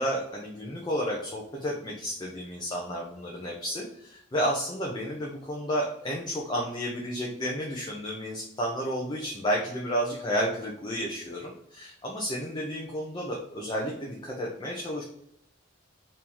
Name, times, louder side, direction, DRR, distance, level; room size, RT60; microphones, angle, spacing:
voice 1, 0.0-15.0, equal, 20° left, -2 dB, 0.5 m, -31 dB
2.9 x 2.6 x 3.7 m, 0.77 s
head